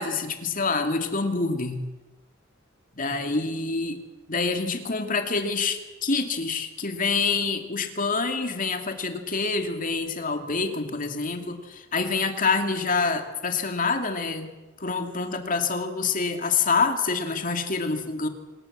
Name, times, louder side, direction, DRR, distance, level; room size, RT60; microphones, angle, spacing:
voice 1, 0.0-1.8 3.0-4.0 4.3-14.5 14.8-18.3, left 4 dB, 45° left, 6 dB, 2.6 m, -26 dB
26.5 x 20.0 x 7.5 m, 1.1 s
head